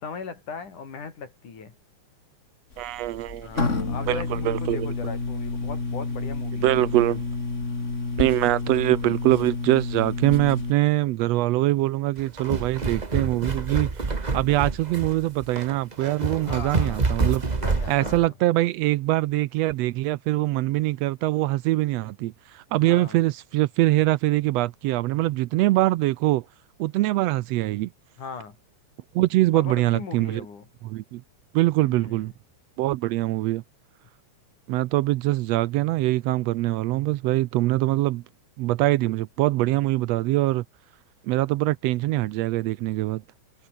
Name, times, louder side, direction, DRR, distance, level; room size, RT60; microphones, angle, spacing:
voice 1, 0.0-1.7 3.4-6.8 16.4-17.0 17.5-18.3 22.8-23.2 28.2-28.6 29.5-30.7 31.9-32.2, left 5 dB, 90° left, 6.0 m, -38 dB
sound 1, 2.7-10.7, left 3 dB, 25° left, 3.2 m, -30 dB
voice 2, 2.8-3.6 4.1-4.9 6.6-7.2 8.2-17.4 17.9-26.4 26.8-27.9 29.1-30.4 30.8-31.2 31.5-32.3 32.8-33.6 34.7-38.2 38.6-40.6 41.2-43.2, right 17 dB, 80° right, 1.6 m, -23 dB
sound 2, 12.2-18.3, right 3 dB, 45° right, 0.5 m, -27 dB
omnidirectional pair, 3.4 m